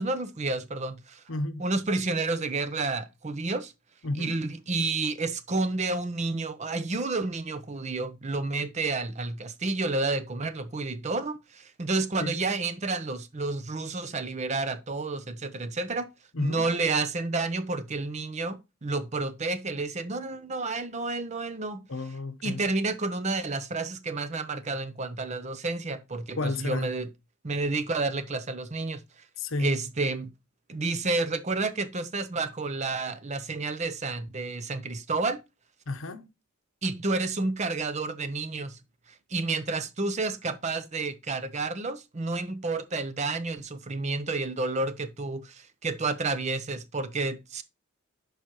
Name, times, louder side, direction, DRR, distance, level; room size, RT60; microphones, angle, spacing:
voice 1, 0.0-1.2 1.6-3.7 4.2-16.1 16.4-21.8 22.4-27.1 27.4-29.0 29.6-30.3 30.7-35.4 36.8-38.8 39.3-47.6, right 3 dB, 30° right, 0.6 m, -30 dB
voice 2, 1.3-1.6 4.0-4.4 12.2-12.5 16.3-16.7 21.9-22.6 26.4-26.9 29.4-29.7 35.9-36.3, left 2 dB, 65° left, 0.9 m, -32 dB
11.0 x 4.8 x 3.0 m
head